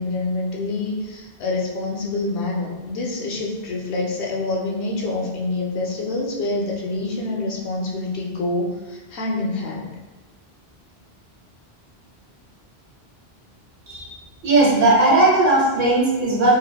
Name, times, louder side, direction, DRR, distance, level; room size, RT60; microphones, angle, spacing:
voice 1, 0.0-9.9, left 2 dB, 85° left, -2 dB, 0.9 m, -26 dB
voice 2, 14.4-16.5, right 2 dB, 60° right, -6 dB, 1.1 m, -17 dB
2.9 x 2.0 x 2.2 m, 1.1 s
omnidirectional pair, 1.1 m